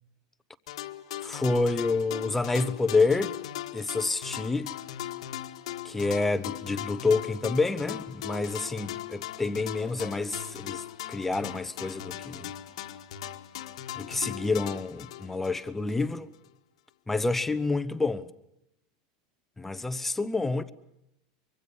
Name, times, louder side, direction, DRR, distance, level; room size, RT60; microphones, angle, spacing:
sound 1, 0.7-16.1, left 12 dB, 90° left, 1.8 m, -39 dB
voice 1, 1.2-3.4 3.7-4.7 5.8-12.5 14.0-16.3 17.1-18.3 19.6-20.7, left 3 dB, 5° left, 0.8 m, -28 dB
24.5 x 24.0 x 7.1 m
supercardioid pair, 160°, 3 cm